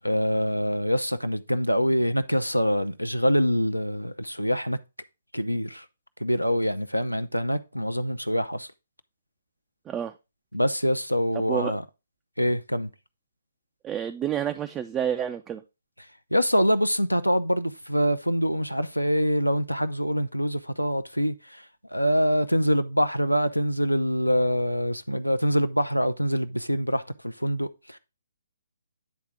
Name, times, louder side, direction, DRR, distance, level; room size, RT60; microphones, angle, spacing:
voice 1, 0.0-4.8 5.3-5.8 6.2-8.7 10.5-11.8 12.4-12.9 16.3-21.6 21.9-28.0, equal, 90° left, 0.5 m, -25 dB
voice 2, 13.8-15.6, right 9 dB, 15° right, 0.3 m, -29 dB
9.5 x 3.6 x 4.5 m
figure-of-eight pair, 130°, 0 cm